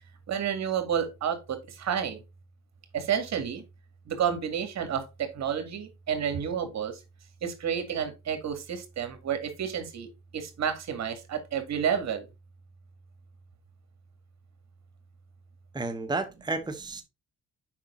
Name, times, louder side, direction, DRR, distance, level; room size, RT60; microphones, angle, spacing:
voice 1, 0.3-2.2 2.9-3.6 4.1-7.0 7.4-10.1 10.3-12.3, right 8 dB, 60° right, 2.2 m, -30 dB
voice 2, 15.7-17.0, right 3 dB, 15° right, 1.1 m, -32 dB
7.4 x 5.4 x 3.8 m
cardioid pair, 90°, 30 cm